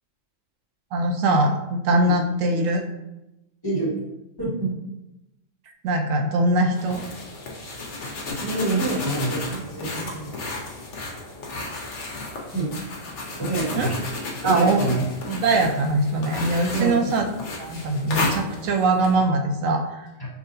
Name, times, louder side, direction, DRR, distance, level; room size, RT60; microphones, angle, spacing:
voice 1, 0.9-2.8 5.8-7.0 13.7-13.9 14.4-15.0 15.3-17.2 17.6-20.1, right 2 dB, 80° right, 4 dB, 1.0 m, -22 dB
voice 2, 4.4-4.7 8.4-10.3 12.5-12.7 13.4-14.0 14.4-15.0 16.7-17.0 20.2-20.3, right 2 dB, 20° left, -7 dB, 1.4 m, -26 dB
sound 1, 6.7-19.1, left 2 dB, 65° left, 1.1 m, -33 dB
5.7 x 2.9 x 2.6 m, 0.93 s
omnidirectional pair, 1.4 m